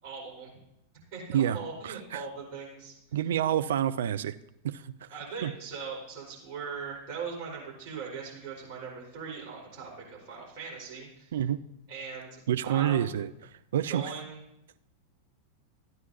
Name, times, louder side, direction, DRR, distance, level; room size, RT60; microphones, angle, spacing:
voice 1, 0.0-0.5 1.1-2.9 5.1-11.3 11.9-13.2 13.9-14.4, right 5 dB, 40° right, -4 dB, 4.7 m, -40 dB
voice 2, 1.8-2.2 3.1-4.3 4.6-5.1 5.4-5.5 11.3-11.6 12.5-13.3 13.7-14.1, right 10 dB, 60° right, 12 dB, 0.3 m, -28 dB
14.0 x 9.3 x 2.8 m, 0.80 s
figure-of-eight pair, 90°, 0 cm